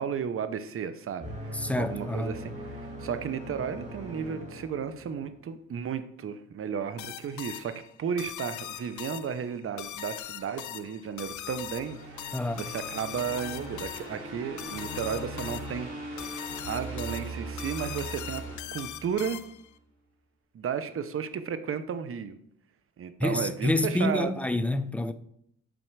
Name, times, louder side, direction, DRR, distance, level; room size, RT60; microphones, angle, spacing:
voice 1, 0.0-16.3 16.7-18.4 18.7-19.4 20.5-22.4 23.0-24.3, right 7 dB, 45° right, 0.8 m, -34 dB
sound 1, 1.2-5.3, equal, 25° right, 2.9 m, -40 dB
voice 2, 1.5-2.3 12.3-12.7 23.2-25.1, left 1 dB, 5° left, 0.5 m, -28 dB
sound 2, 7.0-19.7, left 13 dB, 70° left, 0.6 m, -41 dB
sound 3, 11.1-19.4, right 2 dB, 65° right, 3.5 m, -40 dB
7.9 x 5.3 x 4.7 m
cardioid pair, 90°, 30 cm